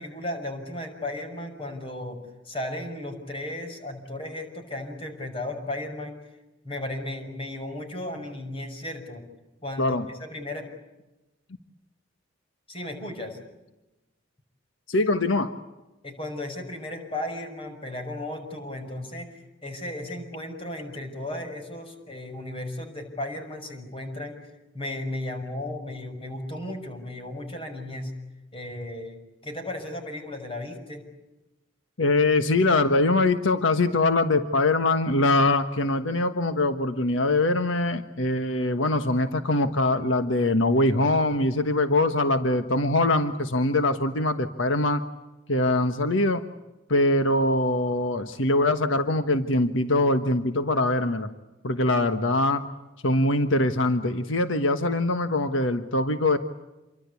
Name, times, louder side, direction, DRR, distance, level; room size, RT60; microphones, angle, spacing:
voice 1, 0.0-2.2 2.4-6.2 6.6-9.2 9.6-10.7 12.7-13.4 16.0-24.4 24.7-28.1 28.5-31.0, left 1 dB, 30° left, 5 dB, 6.1 m, -35 dB
voice 2, 14.9-15.5 32.0-45.0 45.5-46.4 46.9-51.3 51.6-52.6 53.0-56.4, left 2 dB, 80° left, 9 dB, 1.4 m, -23 dB
28.5 x 24.0 x 8.4 m, 1.0 s
head